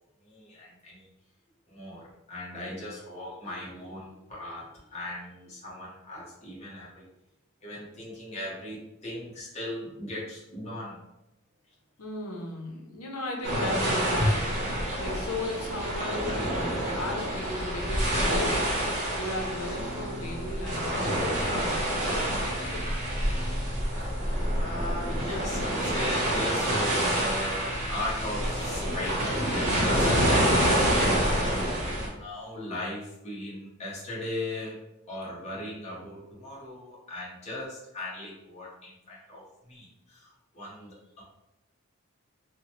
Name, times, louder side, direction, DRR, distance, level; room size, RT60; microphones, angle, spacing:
voice 1, 0.2-1.1 1.7-7.0 7.6-11.0 24.2-34.7 35.1-41.2, left 1 dB, 30° left, -6 dB, 0.9 m, -38 dB
voice 2, 12.0-14.6 15.0-18.8 19.2-22.9, left 2 dB, 90° left, 0 dB, 0.6 m, -36 dB
sound 1, 13.4-32.1, equal, 35° right, 0.8 m, -27 dB
2.9 x 2.1 x 2.9 m, 0.90 s
head